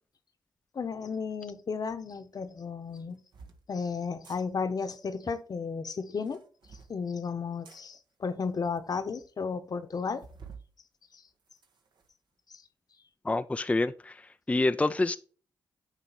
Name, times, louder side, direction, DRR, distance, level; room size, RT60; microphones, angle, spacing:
voice 1, 0.7-3.2 3.7-6.4 6.9-10.3 11.1-11.2, left 5 dB, 55° left, 1.0 m, -34 dB
sound 1, 1.9-2.0 2.9-3.6 4.1-4.4 6.1-6.9 7.6-7.8 8.5-8.6 8.8-8.9 9.2-9.3 10.2-10.7 11.1-12.1, right 5 dB, 70° right, 1.3 m, -51 dB
voice 2, 13.2-15.2, left 2 dB, 15° left, 0.4 m, -27 dB
9.2 x 3.1 x 6.0 m
supercardioid pair, 55°, 8 cm